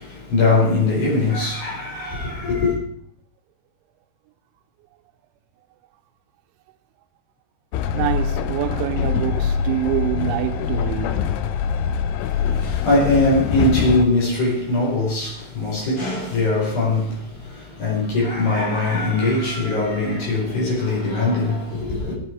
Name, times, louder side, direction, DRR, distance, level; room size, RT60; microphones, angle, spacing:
voice 1, 0.0-2.8 12.1-22.2, left 2 dB, 50° left, 6.4 m, -21 dB
Train, 7.7-14.0, left 7 dB, 80° left, 2.5 m, -23 dB
voice 2, 7.9-11.4, right 16 dB, 80° right, 3.0 m, -26 dB
17.0 x 9.4 x 4.7 m
omnidirectional pair, 5.5 m